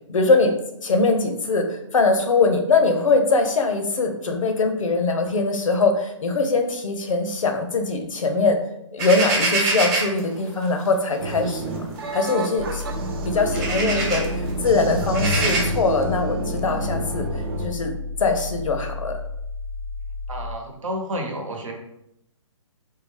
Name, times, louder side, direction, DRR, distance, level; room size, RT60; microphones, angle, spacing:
voice 1, 0.1-0.6 0.8-8.6 8.9-11.8 12.1-12.8 13.2-14.2 14.6-17.9 18.2-19.2, left 3 dB, 75° left, 5 dB, 0.7 m, -22 dB
sound 1, 9.0-10.2 11.3-11.5 12.0-12.1 12.8-12.9 13.4-14.3 15.0-15.6, right 2 dB, 20° right, 1.0 m, -24 dB
sound 2, 11.2-17.7, right 1 dB, 45° right, 0.6 m, -28 dB
sound 3, 12.6-20.6, left 3 dB, 20° left, 0.3 m, -33 dB
voice 2, 20.3-21.7, equal, 75° right, 2 dB, 1.0 m, -30 dB
3.7 x 2.3 x 3.3 m, 0.80 s
hypercardioid pair, 140°, 17 cm